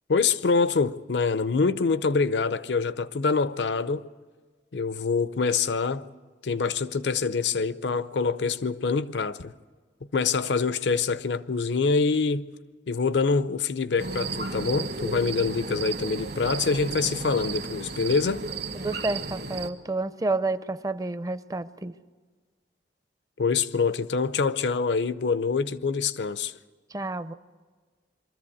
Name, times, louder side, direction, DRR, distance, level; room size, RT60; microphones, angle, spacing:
voice 1, 0.1-4.1 4.7-6.1 6.4-9.5 10.1-12.5 12.9-18.4 23.4-26.6, left 4 dB, 75° left, 0.6 m, -25 dB
sound 1, 14.0-19.7, right 4 dB, 60° right, 1.4 m, -33 dB
voice 2, 18.7-21.9 26.9-27.3, right 2 dB, 20° right, 0.5 m, -30 dB
23.5 x 14.0 x 8.6 m
head